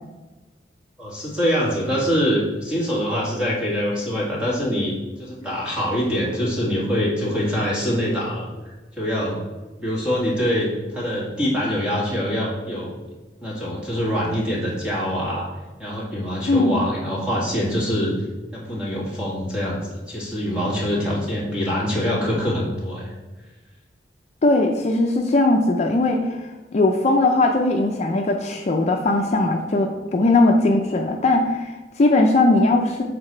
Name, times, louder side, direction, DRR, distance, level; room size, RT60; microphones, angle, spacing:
voice 1, 1.0-8.5 9.0-9.4 9.8-12.9 13.4-15.5 15.8-18.1 18.5-23.1, equal, 5° right, -6 dB, 2.0 m, -24 dB
voice 2, 16.5-16.9 24.4-33.0, left 2 dB, 40° left, 3 dB, 0.5 m, -19 dB
6.8 x 4.0 x 4.3 m, 1.2 s
head